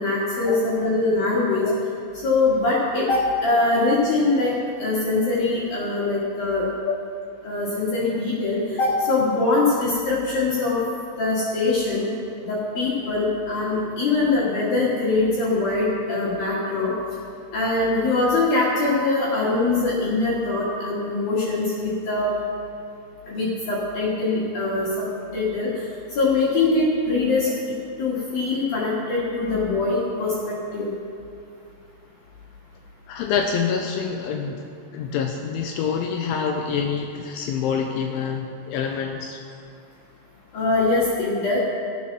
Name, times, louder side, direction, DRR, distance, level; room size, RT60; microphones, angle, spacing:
voice 1, 0.0-1.7 2.2-4.5 4.8-6.6 7.4-10.8 11.2-12.1 12.4-16.9 17.5-22.3 23.3-25.1 25.3-25.7 26.1-27.5 28.0-30.3 30.7-30.9 40.5-41.6, left 3 dB, 55° left, -7 dB, 3.2 m, -22 dB
voice 2, 33.1-34.6 34.9-39.4, left 6 dB, 80° left, 3 dB, 3.0 m, -26 dB
16.0 x 9.5 x 6.1 m, 2.5 s
omnidirectional pair, 5.9 m